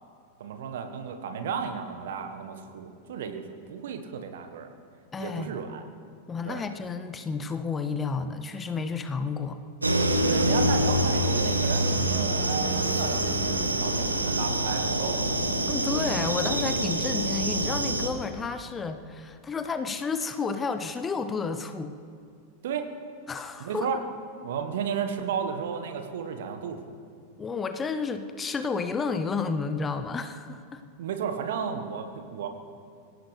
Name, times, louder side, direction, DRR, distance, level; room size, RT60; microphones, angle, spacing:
voice 1, 0.4-4.7 5.2-5.8 6.4-6.6 10.3-15.5 22.6-22.9 23.6-24.0 24.4-26.9 31.0-32.5, right 7 dB, 55° right, 7 dB, 1.5 m, -33 dB
voice 2, 5.1-5.6 6.3-9.6 15.7-22.0 23.3-24.0 27.4-30.8, left 4 dB, 20° left, 9 dB, 0.8 m, -31 dB
sound 1, 9.8-18.1, right 1 dB, 80° right, 1.4 m, -26 dB
25.0 x 16.0 x 3.4 m, 2.3 s
figure-of-eight pair, 90°, 0 cm